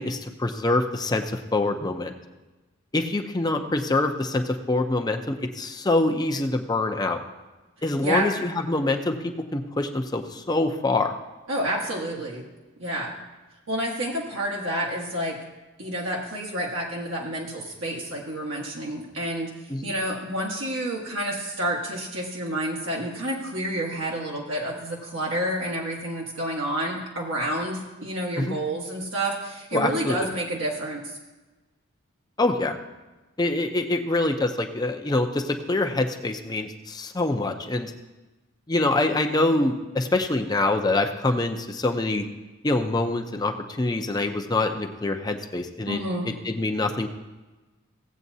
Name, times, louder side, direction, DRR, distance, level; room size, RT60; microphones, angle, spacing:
voice 1, 0.0-2.1 2.9-7.2 7.8-11.1 19.7-19.9 28.4-28.5 29.7-30.3 32.4-32.7 33.4-37.9 38.7-42.3 42.6-46.0 46.2-47.1, left 2 dB, 20° left, 4 dB, 0.6 m, -25 dB
voice 2, 8.0-8.3 11.5-12.4 12.8-13.1 13.7-15.4 15.8-19.5 19.8-31.2 45.9-46.3, right 1 dB, 75° right, -3 dB, 1.5 m, -29 dB
16.5 x 8.2 x 2.7 m, 1.2 s
head